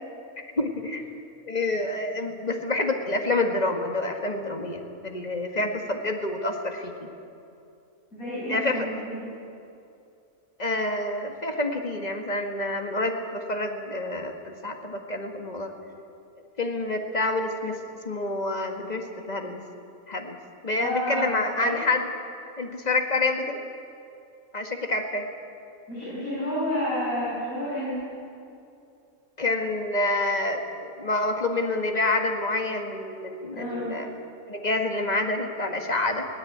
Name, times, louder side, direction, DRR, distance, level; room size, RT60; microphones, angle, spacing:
voice 1, 0.6-1.0 1.5-7.1 8.5-8.9 10.6-15.7 16.6-17.8 18.1-19.6 20.1-20.4 20.6-22.1 22.6-23.6 24.5-25.2 29.4-34.1 34.5-36.3, left 2 dB, 30° left, 4 dB, 1.8 m, -28 dB
voice 2, 8.1-9.3 20.8-21.8 25.9-28.0 33.5-34.0, equal, 75° left, -9 dB, 7.2 m, -30 dB
20.0 x 18.0 x 8.7 m, 2.6 s
omnidirectional pair, 1.5 m